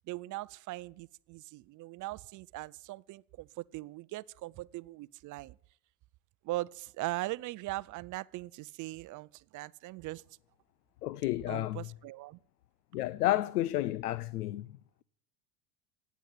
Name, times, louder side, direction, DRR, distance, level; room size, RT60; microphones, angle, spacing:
voice 1, 0.1-5.5 6.4-10.2 11.5-12.4, right 18 dB, 45° right, 0.6 m, -40 dB
voice 2, 11.0-11.9 12.9-15.0, left 15 dB, 85° left, 0.7 m, -32 dB
16.5 x 9.4 x 9.0 m
hypercardioid pair, 85°, 45 cm